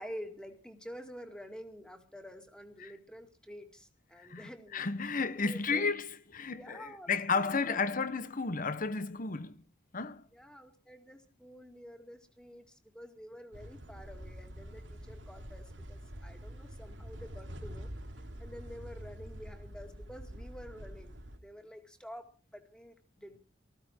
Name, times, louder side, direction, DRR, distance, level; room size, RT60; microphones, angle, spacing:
voice 1, 0.0-4.9 5.4-5.8 6.5-8.2 10.3-17.9 18.4-23.4, equal, 5° left, 2.2 m, -49 dB
voice 2, 4.2-9.6 9.9-10.2, left 4 dB, 50° left, 1.1 m, -33 dB
sound 1, 13.5-21.4, equal, 80° right, 3.0 m, -46 dB
19.0 x 15.0 x 4.5 m
head